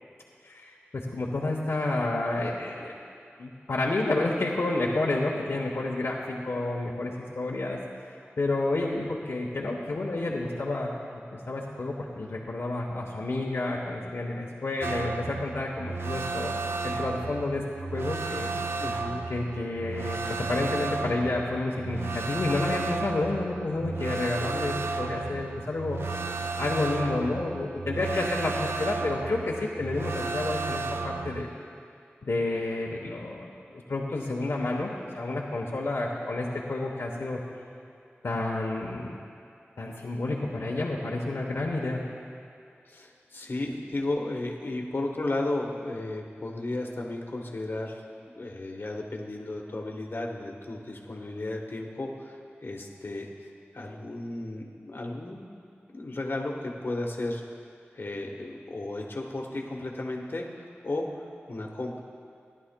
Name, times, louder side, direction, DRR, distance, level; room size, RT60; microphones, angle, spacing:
voice 1, 0.4-2.9 3.4-7.8 8.4-16.5 16.8-18.5 19.3-26.0 26.6-31.5 32.2-37.4 38.2-39.1 39.8-42.0, left 2 dB, 80° left, -3 dB, 0.9 m, -30 dB
sound 1, 14.8-31.5, right 4 dB, 70° right, 0.5 m, -33 dB
voice 2, 18.8-19.3 42.8-48.0 48.4-55.4 55.9-57.6 57.9-62.0, left 2 dB, 60° left, 0 dB, 1.2 m, -34 dB
17.5 x 11.0 x 2.2 m, 2.4 s
wide cardioid pair, 75°, 4 cm